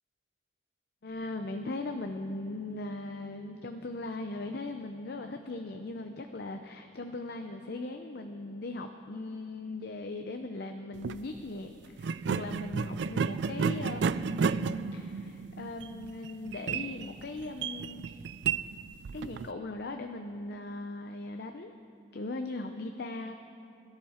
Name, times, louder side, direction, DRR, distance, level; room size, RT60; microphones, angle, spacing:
voice 1, 1.0-18.0 19.1-21.7 22.1-23.3, left 2 dB, 60° left, 6 dB, 0.6 m, -39 dB
sound 1, 10.9-11.2 12.0-19.5, right 5 dB, 70° right, 0.4 m, -32 dB
21.5 x 12.5 x 4.4 m, 2.5 s
head